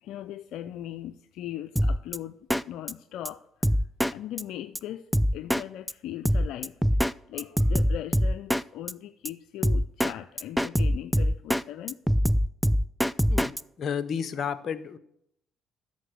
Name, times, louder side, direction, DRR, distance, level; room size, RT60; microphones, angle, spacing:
voice 1, 0.0-2.4 2.7-3.4 3.7-3.8 4.1-5.0 5.3-7.0 7.3-12.0, left 12 dB, 75° left, 11 dB, 0.4 m, -39 dB
Drum kit, 1.8-2.2 2.5-2.6 2.9-3.0 3.3-3.4 3.6-4.1 4.4-4.5 4.8-4.9 5.1-5.6 5.9-6.0 6.3-7.1 7.4-8.6 8.9-9.0 9.3-9.4 9.6-10.1 10.4-11.6 11.9-13.6, equal, ahead, 0.3 m, -23 dB
voice 2, 13.8-15.0, left 7 dB, 55° left, 13 dB, 0.8 m, -31 dB
9.4 x 6.8 x 6.5 m, 0.74 s
supercardioid pair, 65°, 0 cm